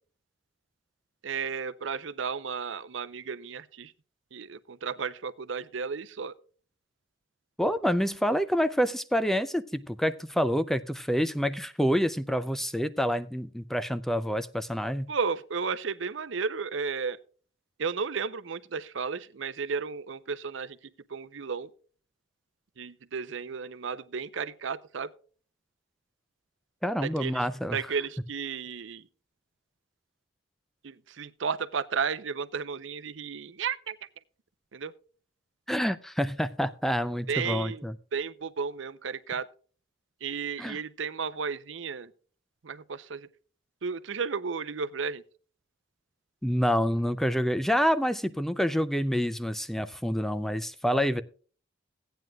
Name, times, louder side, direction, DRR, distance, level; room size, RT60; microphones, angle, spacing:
voice 1, 1.2-3.9 4.3-6.3 15.1-17.2 17.8-20.8 21.1-21.7 22.8-25.1 27.0-27.5 27.7-29.1 30.8-34.0 34.7-34.9 37.3-37.8 38.1-39.5 40.2-42.1 42.6-43.3 43.8-45.2, right 5 dB, 65° right, 0.6 m, -33 dB
voice 2, 7.6-15.1 26.8-27.8 35.7-37.9 40.6-40.8 46.4-51.2, equal, ahead, 0.4 m, -27 dB
17.0 x 9.1 x 2.3 m
head